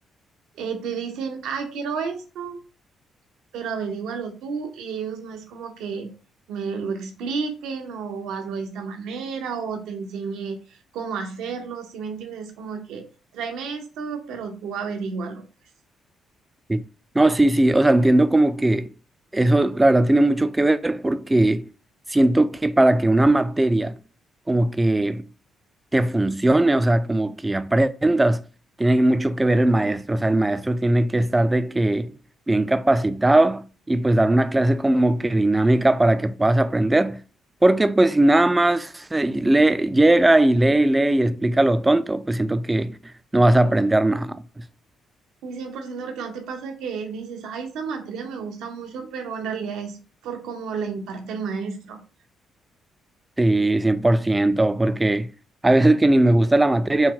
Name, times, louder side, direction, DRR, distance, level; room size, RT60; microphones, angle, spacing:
voice 1, 0.6-2.6 3.5-6.1 6.5-13.0 13.3-15.4 45.4-50.0 50.2-52.0, right 5 dB, 90° right, 0.9 m, -31 dB
voice 2, 17.1-18.9 19.3-21.7 22.1-24.0 24.5-25.2 25.9-28.4 28.8-32.1 32.5-37.2 37.6-43.0 43.3-44.4 53.4-55.3 55.6-57.1, right 1 dB, 15° right, 0.4 m, -19 dB
4.5 x 2.2 x 3.7 m
cardioid pair, 90°, 0 cm